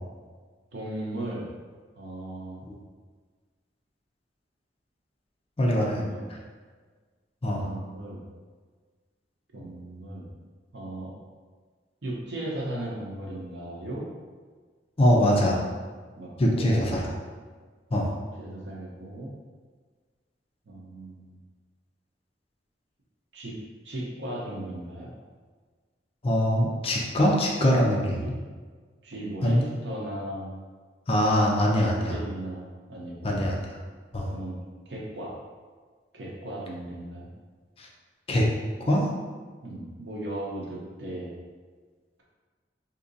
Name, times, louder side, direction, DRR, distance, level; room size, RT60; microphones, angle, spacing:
voice 1, 0.7-1.5 2.0-2.7 5.7-6.3 7.5-8.2 9.5-10.3 10.7-11.1 12.0-14.0 16.2-16.9 18.1-19.3 20.7-21.4 23.3-23.6 23.8-25.1 27.7-27.9 28.2-28.3 29.0-30.5 31.8-33.4 34.3-34.6 34.9-35.4 36.1-37.3 39.6-41.3, right 1 dB, 70° right, -4 dB, 0.8 m, -37 dB
voice 2, 5.6-6.0 6.3-6.4 7.4-7.6 15.0-15.6 16.4-17.1 17.9-18.1 26.2-28.4 29.4-29.6 31.1-32.2 33.2-33.6 34.1-34.3 37.8-37.9 38.3-38.5 38.9-39.0, equal, 30° left, -2 dB, 0.5 m, -23 dB
3.7 x 2.8 x 2.6 m, 1.5 s
head